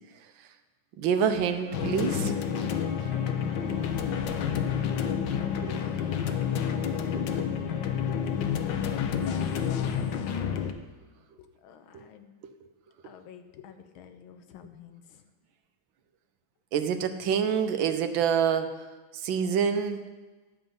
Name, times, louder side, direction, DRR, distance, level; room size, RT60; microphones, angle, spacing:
voice 1, 1.0-2.3 5.6-5.8 7.4-7.5 11.9-12.0 16.7-18.8 19.2-20.0, right 7 dB, 75° right, 8 dB, 1.5 m, -26 dB
sound 1, 1.1-9.5, equal, 45° right, 1.6 m, -47 dB
sound 2, 1.7-10.7, left 8 dB, 70° left, 1.4 m, -29 dB
voice 2, 3.3-4.5 11.4-12.3 13.0-15.2, left 6 dB, 90° left, 9 dB, 1.6 m, -50 dB
11.5 x 7.9 x 5.3 m, 1.3 s
omnidirectional pair, 2.2 m